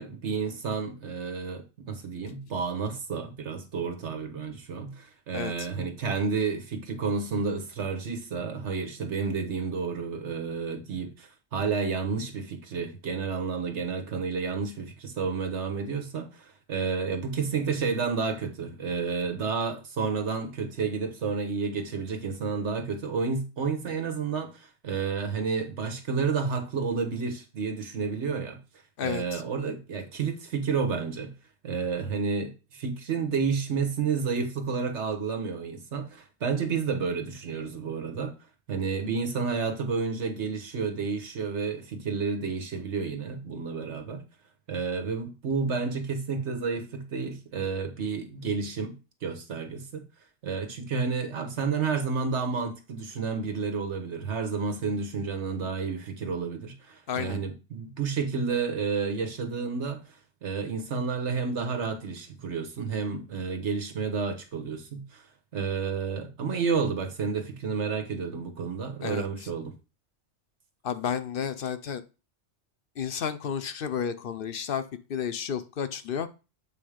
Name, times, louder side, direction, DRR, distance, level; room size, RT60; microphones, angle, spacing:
voice 1, 0.0-28.6 29.0-31.3 31.6-38.3 38.7-44.2 44.7-49.0 49.2-50.0 50.4-60.0 60.4-65.2 65.5-69.8, right 5 dB, 85° right, 1.5 m, -30 dB
voice 2, 29.0-29.4 57.1-57.4 69.0-69.3 70.8-72.0 73.0-74.8 75.1-76.3, left 8 dB, 60° left, 0.7 m, -31 dB
7.8 x 3.5 x 5.0 m
omnidirectional pair, 1.1 m